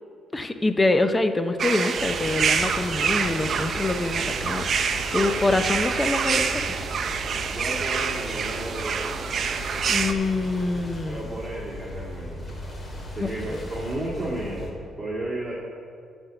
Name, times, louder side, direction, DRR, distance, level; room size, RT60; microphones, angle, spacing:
voice 1, 0.3-6.7 9.9-11.4 13.2-13.7, left 2 dB, 20° left, 9 dB, 0.6 m, -25 dB
sound 1, 1.6-10.1, right 6 dB, 55° right, 0.6 m, -26 dB
sound 2, 2.0-14.7, left 1 dB, 35° left, 2.0 m, -37 dB
voice 2, 5.1-5.5 7.5-9.2 11.0-12.6 13.1-15.5, right 1 dB, 20° right, -7 dB, 2.1 m, -33 dB
12.5 x 4.4 x 6.8 m, 2.3 s
cardioid pair, 90°, 0 cm